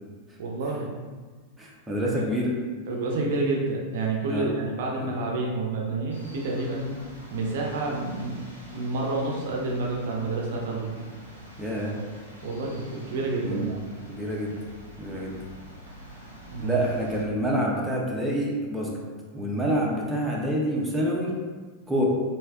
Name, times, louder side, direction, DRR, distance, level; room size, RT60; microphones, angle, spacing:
voice 1, 0.4-0.9 2.2-2.3 2.9-6.9 7.3-8.4 8.7-10.9 12.4-13.8 16.5-16.8, right 3 dB, 55° right, -1 dB, 0.5 m, -29 dB
voice 2, 1.6-2.5 4.3-4.6 5.0-5.1 11.6-11.9 13.4-13.7 14.1-14.5 15.0-15.3 16.6-18.9 19.3-21.3 21.9-22.0, equal, 5° right, -4 dB, 0.6 m, -27 dB
sound 1, 6.1-17.2, equal, 85° left, 0.6 m, -46 dB
3.2 x 2.7 x 2.3 m, 1.4 s
figure-of-eight pair, 90°, 0 cm